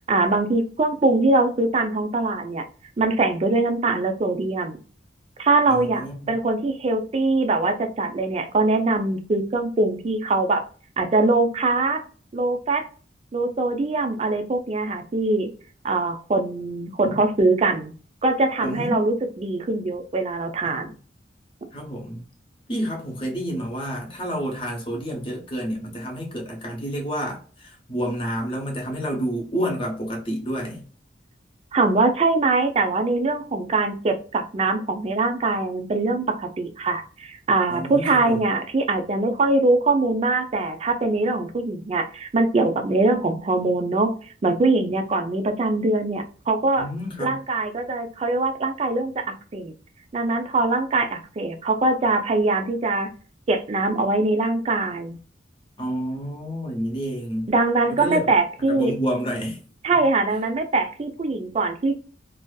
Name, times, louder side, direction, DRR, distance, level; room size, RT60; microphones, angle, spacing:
voice 1, 0.1-2.6 3.0-4.8 5.4-10.6 11.0-12.0 12.3-12.8 13.3-15.5 15.8-17.9 18.2-20.9 31.7-44.1 44.4-46.9 47.2-49.7 50.1-53.1 53.5-55.2 57.5-58.9 59.8-62.0, right 3 dB, 35° right, 0.4 m, -22 dB
voice 2, 5.7-6.3 17.0-17.2 18.6-19.1 20.6-20.9 21.7-22.2 22.7-30.8 37.7-38.4 46.8-47.4 55.8-57.5 57.9-58.2 58.7-59.6, equal, 30° left, 0.7 m, -29 dB
2.6 x 2.3 x 2.2 m
head